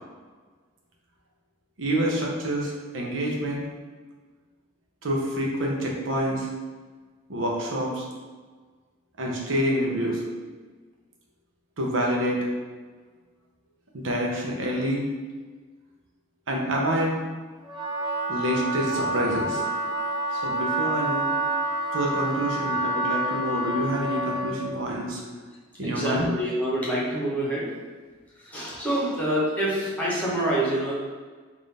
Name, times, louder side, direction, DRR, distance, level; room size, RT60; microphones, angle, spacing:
voice 1, 1.8-3.6 5.0-6.5 7.3-8.1 9.2-10.2 11.8-12.4 13.9-15.0 16.5-17.2 18.3-19.6 20.3-21.3 21.9-25.2 25.8-26.3, equal, 65° right, -1 dB, 0.8 m, -27 dB
Wind instrument woodwind instrument, 17.6-24.7, right 1 dB, 20° right, 0.4 m, -28 dB
voice 2, 25.8-27.7 28.3-31.0, right 1 dB, 10° left, -7 dB, 1.0 m, -26 dB
3.6 x 2.6 x 3.3 m, 1.4 s
head